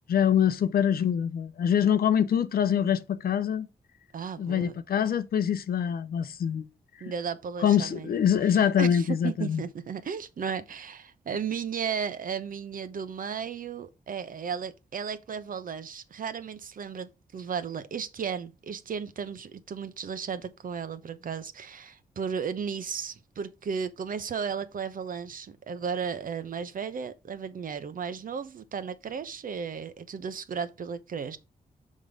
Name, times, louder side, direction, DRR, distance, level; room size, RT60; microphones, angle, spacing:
voice 1, 0.1-3.7 4.4-6.6 7.0-7.1 7.6-9.6, left 8 dB, 70° left, 0.6 m, -24 dB
voice 2, 4.1-4.7 7.0-8.2 8.5-31.4, right 6 dB, 60° right, 0.9 m, -35 dB
6.4 x 3.7 x 5.0 m
cardioid pair, 85°, 16 cm